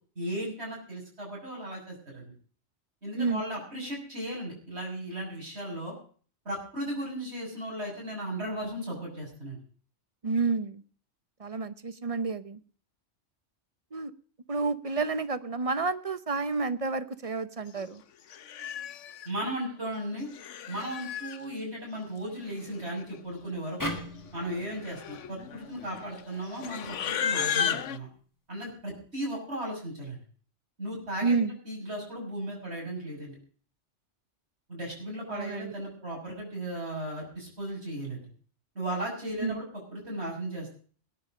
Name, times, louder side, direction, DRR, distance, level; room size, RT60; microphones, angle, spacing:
voice 1, 0.1-2.3 3.0-5.9 6.4-9.6 19.2-20.3 20.7-24.0 24.3-28.1 28.5-30.2 30.8-33.4 34.7-38.3 38.7-40.8, right 1 dB, 65° right, -2 dB, 6.9 m, -36 dB
voice 2, 10.2-10.8 11.4-12.6 13.9-14.1 14.5-18.0 31.2-31.6 35.3-35.7 39.4-39.6, right 4 dB, 30° right, 13 dB, 1.0 m, -30 dB
Livestock farm animals working animals, 17.8-17.9 18.3-19.3 20.1-21.4 22.5-22.6 22.8-23.2 23.5-23.7 24.4-28.0, left 8 dB, 85° left, 1.2 m, -34 dB
sound 1, 23.8-27.0, equal, 15° left, 2.2 m, -40 dB
18.5 x 10.0 x 5.0 m, 0.43 s
omnidirectional pair, 1.2 m